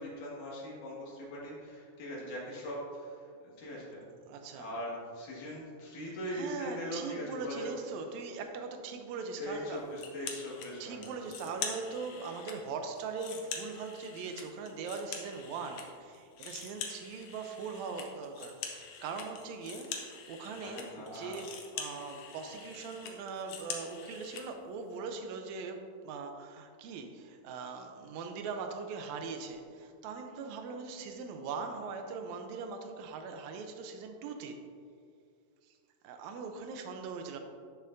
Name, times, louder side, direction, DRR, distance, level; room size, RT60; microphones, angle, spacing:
voice 1, 0.0-4.1 4.5-7.7 9.4-11.1 11.5-11.6 20.4-21.4, equal, 85° left, -5 dB, 3.5 m, -41 dB
voice 2, 4.3-4.7 6.0-9.8 10.8-34.6 35.6-35.8 36.0-37.4, right 4 dB, 75° right, 5 dB, 1.9 m, -41 dB
sound 1, 10.0-10.7 11.0-12.6 13.0-15.9 16.1-24.5, left 6 dB, 70° left, 2.0 m, -44 dB
12.5 x 6.8 x 2.6 m, 2.3 s
omnidirectional pair, 3.6 m